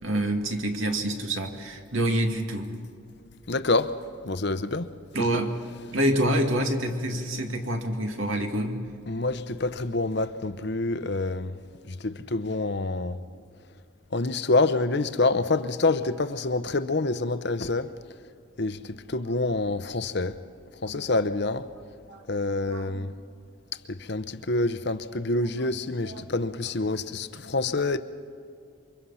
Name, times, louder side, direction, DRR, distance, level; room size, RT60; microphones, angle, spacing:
voice 1, 0.0-2.8 5.1-5.6 5.9-8.9 20.9-21.2 22.1-22.3 22.6-23.1 25.4-26.2 27.4-27.6, right 1 dB, 70° right, 2.3 m, -28 dB
voice 2, 3.5-4.0 4.2-4.9 5.2-5.3 9.1-11.5 11.9-13.2 14.1-17.9 18.6-20.4 20.8-21.7 22.3-23.1 23.9-28.0, left 2 dB, 55° left, 0.8 m, -27 dB
28.5 x 24.5 x 5.7 m
head